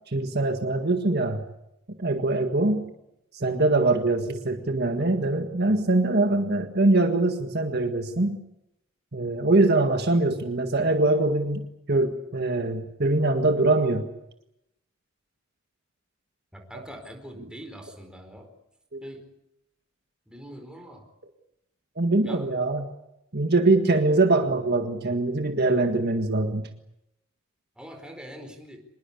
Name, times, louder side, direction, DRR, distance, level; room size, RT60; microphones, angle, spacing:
voice 1, 0.1-1.4 2.0-2.9 3.3-8.4 9.1-14.1 18.9-19.0 22.0-22.9 23.3-26.6, right 2 dB, 50° right, 6 dB, 1.8 m, -23 dB
voice 2, 16.5-18.5 19.0-19.3 20.3-21.1 22.2-22.6 23.5-23.6 27.8-28.8, equal, 5° right, 4 dB, 4.5 m, -43 dB
25.5 x 21.5 x 8.4 m, 0.84 s
head